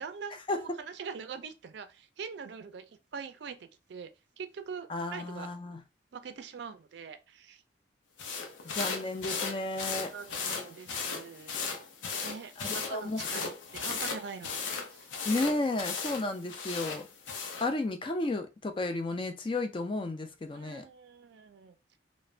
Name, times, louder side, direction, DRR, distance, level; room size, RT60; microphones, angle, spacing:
voice 1, 0.0-4.1 4.4-5.5 6.1-7.6 10.1-11.9 12.1-14.6 14.9-15.1 20.5-21.8, right 6 dB, 65° right, 0.4 m, -43 dB
voice 2, 4.9-5.8 8.7-10.1 12.6-13.4 15.3-17.1 17.6-20.8, left 2 dB, 25° left, 0.3 m, -33 dB
sound 1, 8.2-17.7, left 5 dB, 80° left, 0.6 m, -36 dB
3.1 x 2.1 x 2.4 m
head